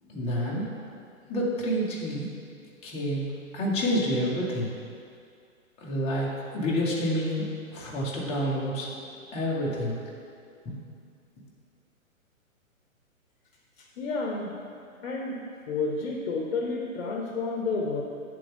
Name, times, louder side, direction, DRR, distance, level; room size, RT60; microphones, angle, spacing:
voice 1, 0.1-0.7 1.3-2.3 2.8-3.3 3.5-4.7 5.8-7.5 7.7-8.9 9.3-10.0 10.6-10.8, equal, 15° left, -5 dB, 0.9 m, -28 dB
voice 2, 14.0-14.5 15.0-15.4 15.7-18.0, left 3 dB, 50° left, -1 dB, 0.9 m, -30 dB
9.0 x 3.5 x 3.4 m, 2.3 s
hypercardioid pair, 135°, 41 cm